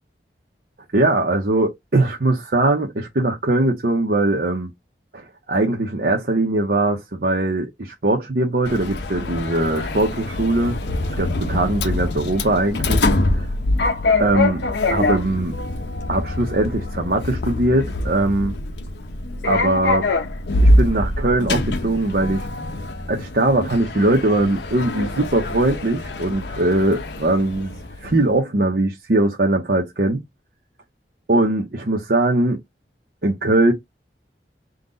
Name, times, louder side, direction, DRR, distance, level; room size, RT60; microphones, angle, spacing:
voice 1, 0.9-4.7 5.1-10.8 11.2-13.0 13.3-13.5 14.2-14.6 14.9-15.6 16.1-18.5 19.4-20.1 20.6-22.5 23.1-30.2 31.3-32.6 33.2-33.7, right 2 dB, 60° right, 0.8 m, -20 dB
Sliding door, 8.7-28.3, left 2 dB, 75° left, 0.7 m, -24 dB
3.8 x 2.3 x 3.9 m
head